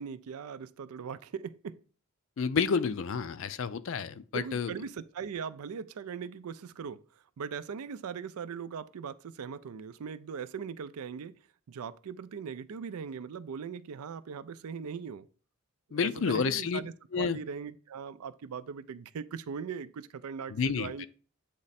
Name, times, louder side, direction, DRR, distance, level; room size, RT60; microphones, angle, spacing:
voice 1, 0.0-1.8 4.3-7.0 7.4-11.4 11.7-15.3 15.9-21.1, right 6 dB, 80° right, 0.4 m, -40 dB
voice 2, 2.4-4.7 15.9-16.8 17.1-17.4 20.5-21.1, left 6 dB, 60° left, 0.4 m, -30 dB
8.2 x 3.2 x 4.1 m
head